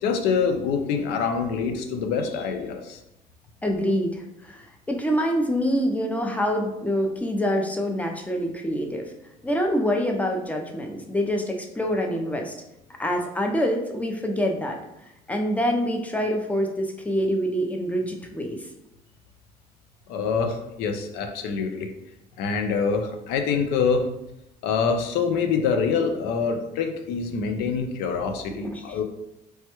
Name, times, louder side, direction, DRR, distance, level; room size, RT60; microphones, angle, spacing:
voice 1, 0.0-3.0 20.1-21.9 22.4-24.1 24.6-29.0, left 5 dB, 85° left, 5 dB, 0.5 m, -25 dB
voice 2, 3.6-9.1 9.4-12.5 13.0-14.8 15.3-18.7 28.7-29.0, equal, 10° left, 2 dB, 0.5 m, -26 dB
3.2 x 2.2 x 2.9 m, 0.87 s
cardioid pair, 95°, 16 cm